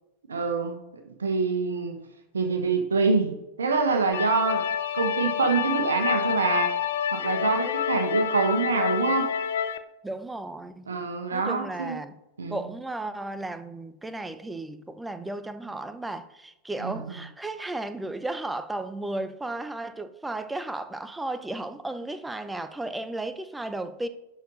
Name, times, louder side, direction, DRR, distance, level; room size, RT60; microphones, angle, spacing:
voice 1, 0.3-0.8 1.2-2.0 2.3-4.6 4.9-6.7 7.1-9.3 10.9-12.0 12.4-12.6 16.8-17.2, right 4 dB, 70° right, 1.2 m, -25 dB
sound 1, 4.1-9.8, left 8 dB, 60° left, 0.6 m, -28 dB
voice 2, 10.0-10.9 11.3-12.2 12.5-24.1, right 2 dB, 5° right, 0.7 m, -34 dB
11.5 x 4.5 x 5.2 m
figure-of-eight pair, 90°, 0 cm